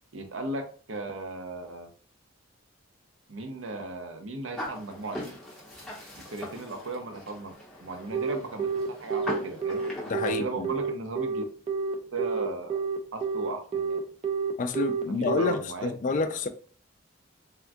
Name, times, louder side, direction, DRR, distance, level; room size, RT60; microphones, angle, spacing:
voice 1, 0.1-1.9 3.3-5.2 6.1-7.5 7.8-8.7 9.0-9.8 10.2-11.4 12.1-12.8 13.1-14.0 15.0-16.4, right 2 dB, 75° right, 0.7 m, -36 dB
sound 1, 4.6-10.1, left 1 dB, ahead, 0.9 m, -40 dB
Telephone, 8.1-15.5, right 6 dB, 30° right, 0.4 m, -29 dB
voice 2, 10.1-10.7 14.6-16.5, left 4 dB, 40° left, 0.3 m, -29 dB
3.5 x 2.3 x 2.5 m
head